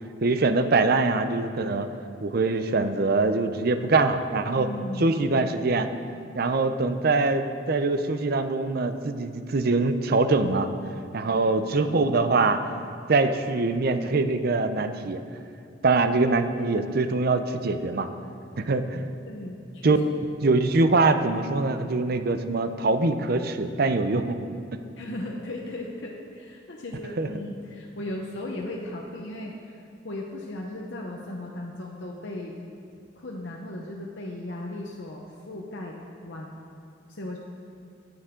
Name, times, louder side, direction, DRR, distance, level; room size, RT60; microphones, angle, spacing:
voice 1, 0.2-1.9 2.2-4.7 5.0-5.9 6.3-10.7 11.1-12.6 13.1-15.2 15.8-18.1 18.6-19.1 19.8-20.0 20.4-24.4 27.2-27.3, right 3 dB, 55° right, 9 dB, 0.6 m, -23 dB
voice 2, 4.5-5.1 11.2-12.1 19.2-20.3 25.0-29.8 30.0-32.6 33.2-36.6 37.1-37.4, left 1 dB, 70° left, -1 dB, 0.9 m, -37 dB
18.5 x 6.9 x 3.8 m, 2.5 s
head